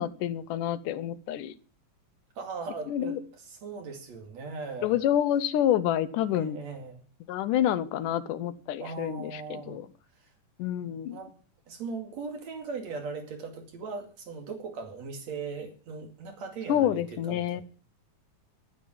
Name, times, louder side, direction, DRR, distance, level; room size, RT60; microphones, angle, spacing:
voice 1, 0.0-1.5 2.9-3.2 4.8-6.6 7.3-9.9 10.6-11.2 16.7-17.6, left 11 dB, 80° left, 13 dB, 2.3 m, -28 dB
voice 2, 2.4-5.1 6.3-7.0 8.8-9.8 10.2-10.3 11.1-11.3 11.7-17.6, right 4 dB, 55° right, 4 dB, 3.4 m, -39 dB
11.0 x 9.4 x 7.4 m, 0.40 s
omnidirectional pair, 3.7 m